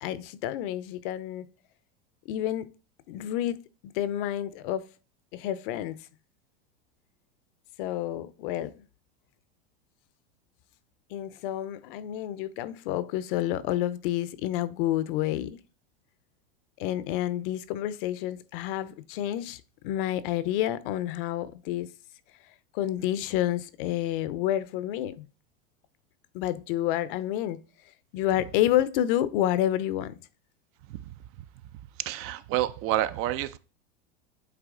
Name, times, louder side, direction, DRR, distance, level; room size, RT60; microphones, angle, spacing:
voice 1, 0.0-1.5 2.3-2.7 3.1-4.9 5.3-6.0 7.8-8.9 11.1-15.6 16.8-21.9 22.7-25.3 26.3-27.6 28.1-30.1, left 12 dB, 65° left, 0.6 m, -29 dB
voice 2, 32.0-33.6, right 13 dB, 45° right, 0.5 m, -28 dB
8.2 x 3.1 x 3.7 m
supercardioid pair, 115°, 30 cm